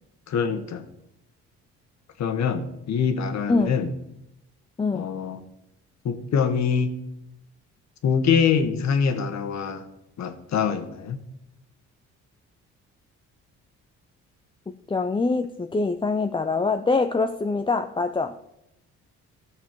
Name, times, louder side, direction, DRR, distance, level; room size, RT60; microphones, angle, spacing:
voice 1, 0.3-0.9 2.2-3.9 4.9-5.4 6.0-6.9 8.0-9.9 10.2-11.2, left 6 dB, 65° left, 8 dB, 1.4 m, -24 dB
voice 2, 14.9-18.3, left 3 dB, 15° left, 7 dB, 0.5 m, -24 dB
15.5 x 6.8 x 4.6 m, 0.85 s
cardioid pair, 90°, 30 cm